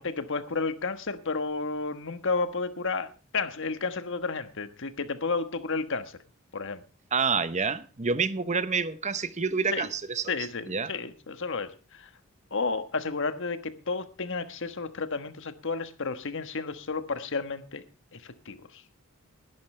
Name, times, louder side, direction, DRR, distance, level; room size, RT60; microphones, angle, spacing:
voice 1, 0.0-6.2 6.5-6.8 9.7-9.9 10.3-12.1 12.5-17.8 18.1-18.8, left 4 dB, 60° left, 1.3 m, -32 dB
voice 2, 7.1-10.3 10.7-10.9, right 5 dB, 35° right, 0.8 m, -28 dB
20.5 x 11.5 x 3.3 m
head